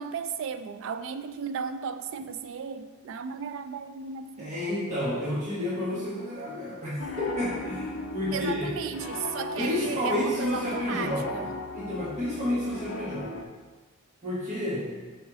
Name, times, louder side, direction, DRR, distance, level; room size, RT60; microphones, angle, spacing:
voice 1, 0.0-4.5 8.3-11.5, right 6 dB, 60° right, 10 dB, 0.3 m, -35 dB
voice 2, 4.4-8.7 9.6-11.3 11.7-13.3 14.2-14.9, left 1 dB, 35° right, -10 dB, 1.3 m, -30 dB
Piano, 7.0-13.4, left 3 dB, 60° left, 0.5 m, -37 dB
6.2 x 4.9 x 3.6 m, 1.3 s
head